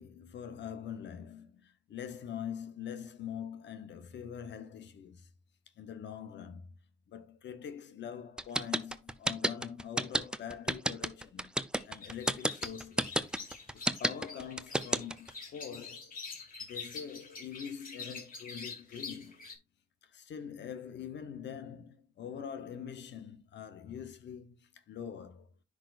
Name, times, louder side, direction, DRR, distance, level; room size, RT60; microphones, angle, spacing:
voice 1, 0.0-5.3 5.8-6.7 7.1-11.5 11.8-13.2 13.7-16.1 16.6-19.4 20.1-25.5, left 8 dB, 65° left, 0.9 m, -44 dB
sound 1, 8.4-15.3, right 1 dB, 5° right, 0.5 m, -30 dB
sound 2, 11.7-19.6, left 5 dB, 45° left, 2.7 m, -46 dB
10.0 x 4.9 x 2.5 m
cardioid pair, 90°, 20 cm